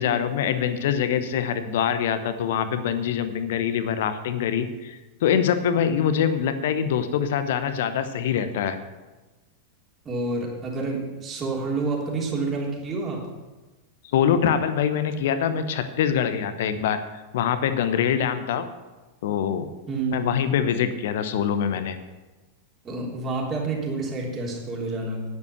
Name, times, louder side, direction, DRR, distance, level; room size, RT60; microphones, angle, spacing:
voice 1, 0.0-8.8 14.1-18.7 19.2-19.7 20.1-22.0, left 8 dB, 55° left, 10 dB, 1.0 m, -24 dB
voice 2, 10.0-13.2 19.9-20.2 22.8-25.2, right 3 dB, 25° right, -2 dB, 3.2 m, -28 dB
9.7 x 9.5 x 6.8 m, 1.2 s
figure-of-eight pair, 90°, 0 cm